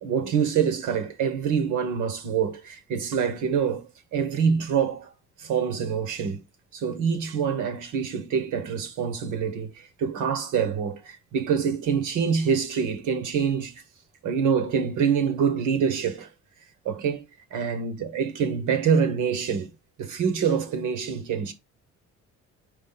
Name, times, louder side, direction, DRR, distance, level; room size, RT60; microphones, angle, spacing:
voice 1, 0.0-5.1 5.4-6.4 6.7-13.8 14.2-16.3 16.8-17.2 17.5-19.7 20.0-21.5, right 7 dB, 85° right, 1.3 m, -26 dB
5.2 x 4.9 x 4.0 m
cardioid pair, 90°, 30 cm